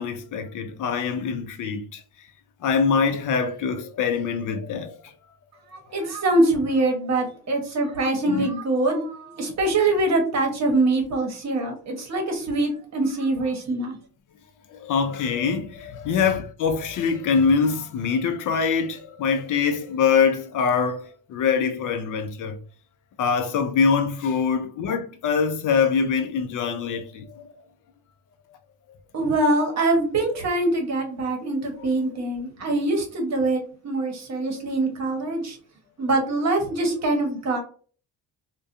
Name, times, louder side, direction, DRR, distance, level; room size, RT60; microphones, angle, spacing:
voice 1, 0.0-2.0 2.6-5.1 8.3-8.5 14.7-22.6 23.2-27.5 31.8-31.9, left 6 dB, 55° left, 0.5 m, -24 dB
voice 2, 5.7-14.0 29.1-35.6 36.0-37.6, right 2 dB, 45° right, 1.0 m, -24 dB
2.4 x 2.2 x 2.5 m
cardioid pair, 105°, 37 cm